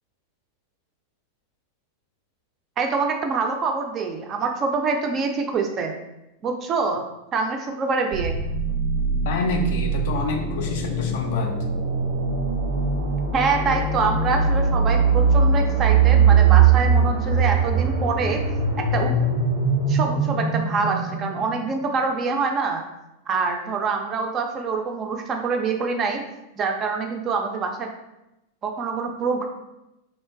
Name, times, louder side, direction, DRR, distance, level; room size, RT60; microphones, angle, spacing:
voice 1, 2.8-6.0 6.4-7.0 7.3-8.4 13.3-18.4 18.9-19.1 19.9-22.8 23.3-26.2 26.6-27.9 28.6-29.5, right 4 dB, 30° right, 3 dB, 0.3 m, -25 dB
sound 1, 8.1-21.9, right 5 dB, 75° right, 0.6 m, -21 dB
voice 2, 9.2-11.6, left 2 dB, 55° left, 3 dB, 0.4 m, -27 dB
2.9 x 2.1 x 2.3 m, 0.92 s
figure-of-eight pair, 90°, 0 cm